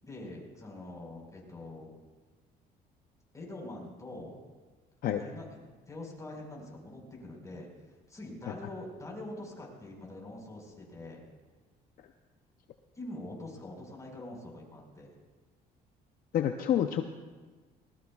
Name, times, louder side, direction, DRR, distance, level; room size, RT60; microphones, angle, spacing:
voice 1, 0.0-1.9 3.3-4.4 5.1-5.5 5.9-7.7 8.1-11.2 12.9-15.2, left 1 dB, 20° left, -1 dB, 4.8 m, -44 dB
voice 2, 16.3-17.0, left 10 dB, 60° left, 6 dB, 0.7 m, -27 dB
20.0 x 19.5 x 2.4 m, 1.3 s
cardioid pair, 110°, 17 cm